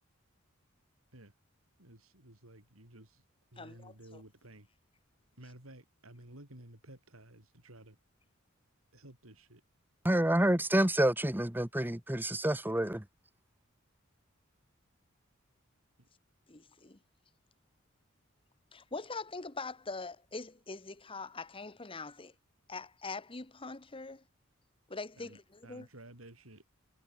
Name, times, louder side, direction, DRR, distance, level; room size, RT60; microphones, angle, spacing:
voice 1, 1.8-3.2 3.5-4.7 5.4-8.0 8.9-9.6 16.0-16.1 25.2-26.6, right 1 dB, 80° right, 6.9 m, -54 dB
voice 2, 3.6-4.2 16.5-17.0 18.7-22.3 22.7-24.2 24.9-25.9, left 3 dB, 25° left, 1.4 m, -43 dB
voice 3, 10.0-13.0, right 1 dB, 10° right, 1.2 m, -28 dB
head